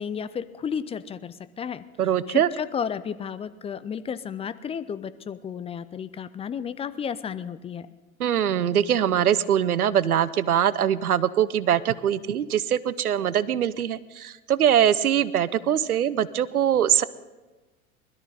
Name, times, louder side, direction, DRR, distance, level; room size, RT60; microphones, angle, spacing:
voice 1, 0.0-1.8 2.3-7.9, left 7 dB, 15° left, 15 dB, 0.4 m, -33 dB
voice 2, 2.0-2.5 8.2-17.0, right 10 dB, 90° right, 18 dB, 0.7 m, -22 dB
21.0 x 13.0 x 4.2 m, 1.2 s
hypercardioid pair, 90°, 43 cm